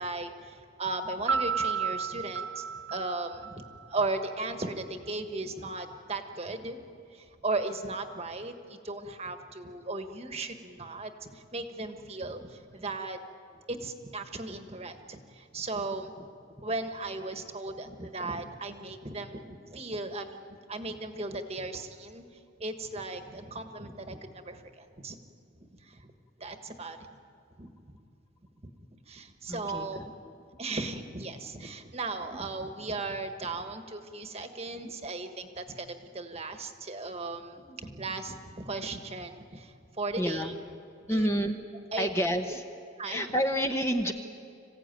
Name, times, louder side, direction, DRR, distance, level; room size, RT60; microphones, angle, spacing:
voice 1, 0.0-2.6 2.9-13.2 13.7-16.3 16.6-25.2 25.6-26.1 26.4-27.1 27.6-27.7 28.6-28.7 29.1-30.1 30.6-40.6 41.1-41.3 41.9-42.1 43.0-43.3, right 2 dB, 30° right, 6 dB, 1.4 m, -37 dB
Piano, 1.3-4.1, right 6 dB, 70° right, 1.1 m, -32 dB
voice 2, 29.5-29.9 34.8-34.9 37.8-37.9 40.2-40.6 41.1-41.6 42.0-42.6 43.0-44.1, equal, 15° left, 4 dB, 0.9 m, -29 dB
26.0 x 16.0 x 9.1 m, 2.4 s
head